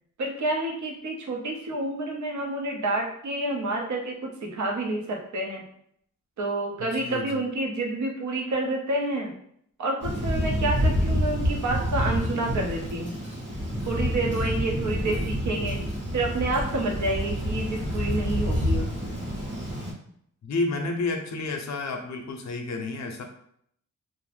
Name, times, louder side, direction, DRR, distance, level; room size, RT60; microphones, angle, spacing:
voice 1, 0.2-5.6 6.4-9.3 9.8-13.1 13.9-15.8 16.1-19.1, right 2 dB, 70° right, 0 dB, 0.7 m, -29 dB
voice 2, 6.8-7.4 10.3-10.7 20.4-23.2, left 3 dB, 60° left, 4 dB, 0.5 m, -31 dB
Thunder, 10.0-19.9, equal, 40° right, 0.9 m, -28 dB
2.5 x 2.1 x 3.3 m, 0.68 s
wide cardioid pair, 110°, 31 cm